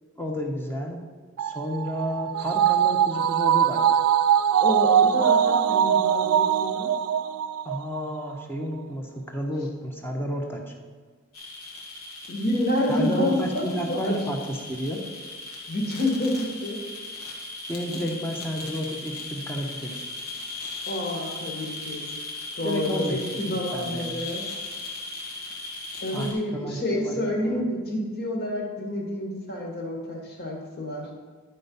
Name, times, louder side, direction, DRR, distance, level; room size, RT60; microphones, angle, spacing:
voice 1, 0.2-1.0 1.4-3.8 7.6-10.7 12.9-15.0 17.7-20.0 22.6-23.2 23.7-24.3 26.1-27.2 27.4-27.6, equal, 10° left, 1 dB, 1.1 m, -31 dB
sound 1, 1.4-8.0 8.4-8.5, right 9 dB, 75° right, 0.3 m, -22 dB
voice 2, 4.6-6.9 12.3-14.1 15.7-16.8 17.9-18.0 20.9-22.1 22.6-24.4 26.0-31.1, left 1 dB, 50° left, 0 dB, 2.0 m, -28 dB
sound 2, 11.3-26.3, left 2 dB, 75° left, 1.7 m, -37 dB
11.0 x 4.5 x 5.5 m, 1.5 s
head